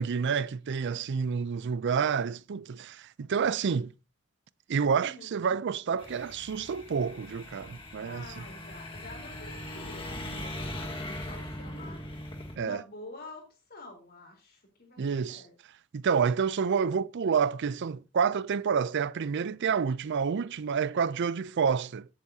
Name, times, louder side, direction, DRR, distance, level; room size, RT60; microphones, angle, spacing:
voice 1, 0.0-3.9 4.7-8.4 12.6-12.8 15.0-15.4 15.9-22.1, right 6 dB, 55° right, 0.4 m, -29 dB
voice 2, 5.0-5.4 8.0-15.5, left 2 dB, 45° left, 3.9 m, -48 dB
sound 1, 6.0-12.6, left 1 dB, 25° left, 1.7 m, -40 dB
16.5 x 8.2 x 2.8 m
head